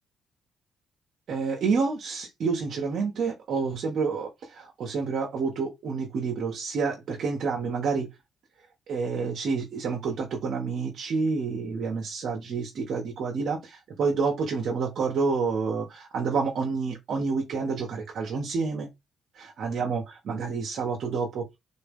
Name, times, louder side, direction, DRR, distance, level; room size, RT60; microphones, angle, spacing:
voice 1, 1.3-8.1 8.9-18.9 19.4-21.6, right 4 dB, 65° right, 1.3 m, -29 dB
4.1 x 3.3 x 3.7 m
cardioid pair, 90°, 0 cm